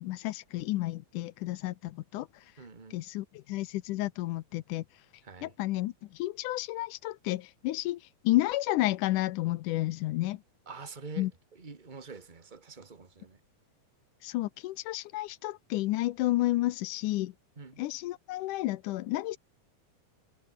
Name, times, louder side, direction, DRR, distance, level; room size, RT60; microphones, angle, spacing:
voice 1, 0.0-2.3 2.9-4.8 5.4-10.4 11.2-11.3 14.2-17.3 17.8-19.4, left 17 dB, 80° left, 2.2 m, -31 dB
voice 2, 2.6-3.0 5.2-5.6 10.6-13.4 17.6-17.8, right 4 dB, 20° right, 1.4 m, -46 dB
omnidirectional pair, 3.8 m